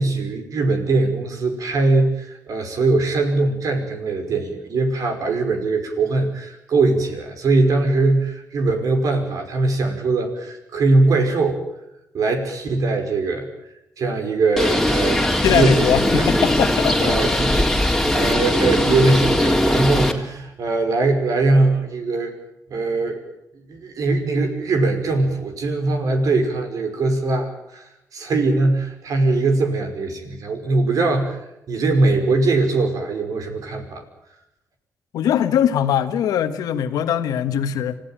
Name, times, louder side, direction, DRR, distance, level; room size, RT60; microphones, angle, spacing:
voice 1, 0.0-11.6 12.1-13.5 14.0-16.3 17.0-22.3 22.7-23.2 23.7-34.0, right 3 dB, 70° right, 5 dB, 5.4 m, -21 dB
Bird, 14.6-20.1, left 1 dB, 5° left, 3.7 m, -20 dB
voice 2, 15.4-17.6 35.1-38.0, left 9 dB, 90° left, 9 dB, 1.6 m, -21 dB
26.0 x 16.0 x 9.0 m, 0.87 s
cardioid pair, 75°, 6 cm